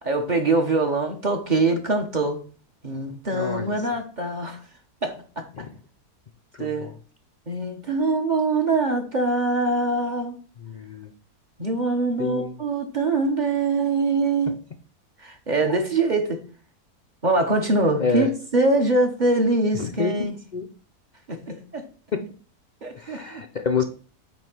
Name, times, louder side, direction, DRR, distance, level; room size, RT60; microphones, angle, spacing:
voice 1, 0.0-2.4 2.8-4.6 5.0-5.5 6.6-6.9 7.5-10.4 11.6-14.6 15.2-16.4 17.2-20.4 21.3-21.9 22.8-23.4, right 2 dB, 35° right, 1.1 m, -23 dB
voice 2, 3.3-3.8 5.6-5.7 6.5-6.9 10.6-11.1 12.2-12.5 18.0-18.3 19.7-20.2 20.5-20.7 22.1-22.2 22.9-23.8, left 5 dB, 55° left, 0.5 m, -28 dB
8.8 x 3.1 x 6.1 m
omnidirectional pair, 1.6 m